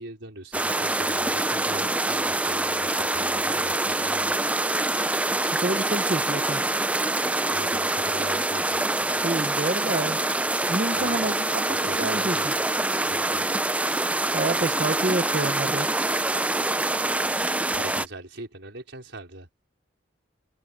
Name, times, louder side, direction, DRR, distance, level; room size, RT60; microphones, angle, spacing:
voice 1, 0.0-4.3 7.5-8.8 10.9-11.3 11.7-12.5 13.0-13.5 17.7-19.5, right 1 dB, 70° right, 5.0 m, -41 dB
sound 1, 0.5-18.1, right 2 dB, 5° right, 0.4 m, -25 dB
voice 2, 5.5-6.6 9.2-10.2 10.7-11.7 11.9-12.5 14.3-15.9, right 2 dB, 40° right, 0.8 m, -28 dB
head